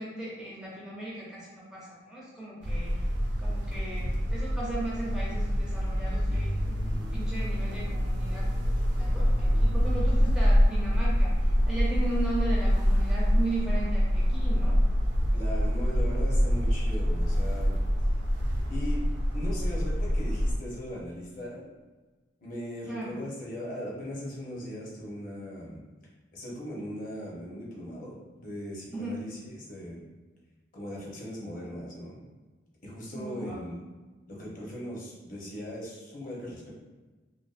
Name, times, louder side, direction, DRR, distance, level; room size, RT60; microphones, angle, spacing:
voice 1, 0.0-2.9 3.4-14.8 22.9-23.1 28.9-29.3 33.1-33.7, right 2 dB, 5° right, -7 dB, 0.4 m, -37 dB
sound 1, 2.6-20.5, equal, 60° right, 0.4 m, -26 dB
voice 2, 15.3-17.8 18.7-19.0 19.3-21.7 22.4-25.8 26.3-30.0 30.7-32.2 32.8-33.7 34.3-36.7, equal, 45° left, -4 dB, 0.7 m, -39 dB
2.5 x 2.2 x 2.3 m, 1.2 s
head